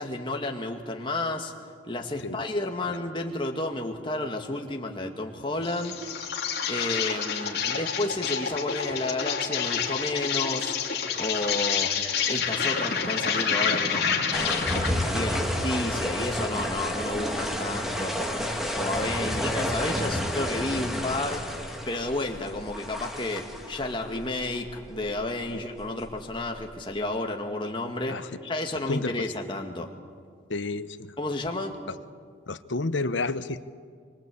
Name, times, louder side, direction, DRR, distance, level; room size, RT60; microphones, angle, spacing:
voice 1, 0.0-1.5 1.9-6.0 6.7-10.7 11.2-11.9 12.3-18.2 18.7-21.5 21.9-29.9 31.2-31.8, left 2 dB, 25° left, 2 dB, 2.1 m, -31 dB
Insect, 5.6-15.0, left 6 dB, 55° left, 3.0 m, -28 dB
sound 1, 14.3-26.9, equal, ahead, 2.0 m, -31 dB
voice 2, 30.5-31.1 32.5-33.6, left 3 dB, 75° left, 13 dB, 0.9 m, -30 dB
26.0 x 24.0 x 8.6 m, 2.1 s
head